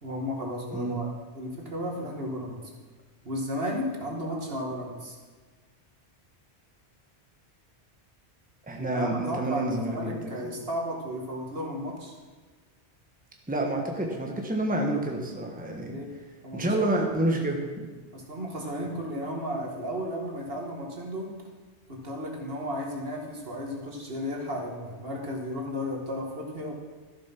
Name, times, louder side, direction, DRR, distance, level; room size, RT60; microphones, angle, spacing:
voice 1, 0.0-1.1 1.3-2.6 3.2-5.2 8.8-12.2 15.9-16.1 16.4-16.7 18.1-21.3 21.9-26.7, equal, 60° right, 0 dB, 2.2 m, -34 dB
voice 2, 0.7-1.1 8.6-10.3 13.5-16.0 16.5-17.9, right 1 dB, 10° right, 1 dB, 1.3 m, -28 dB
13.5 x 7.4 x 6.0 m, 1.4 s
omnidirectional pair, 1.1 m